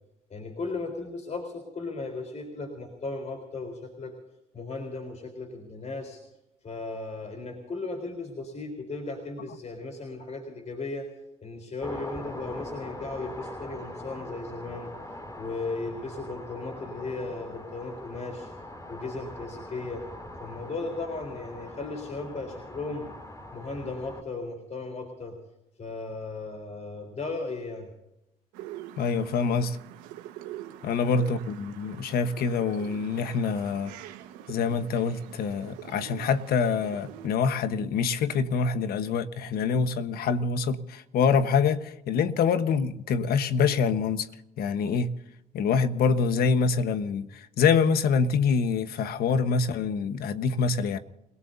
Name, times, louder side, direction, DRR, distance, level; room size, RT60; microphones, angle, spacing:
voice 1, 0.3-4.1 4.5-6.2 6.6-11.1 11.4-14.9 15.4-18.5 18.9-20.0 20.4-23.1 23.5-25.4 25.8-27.9 30.9-31.3, left 3 dB, 45° left, 4.0 m, -36 dB
sound 1, 11.8-24.2, left 1 dB, 20° left, 2.8 m, -42 dB
sound 2, 28.5-37.3, right 12 dB, 90° right, 1.4 m, -45 dB
voice 2, 29.0-29.8 30.8-33.9 34.5-44.3 44.6-45.1 45.5-51.0, left 5 dB, 70° left, 1.2 m, -25 dB
29.0 x 18.0 x 2.7 m
supercardioid pair, 60°, 16 cm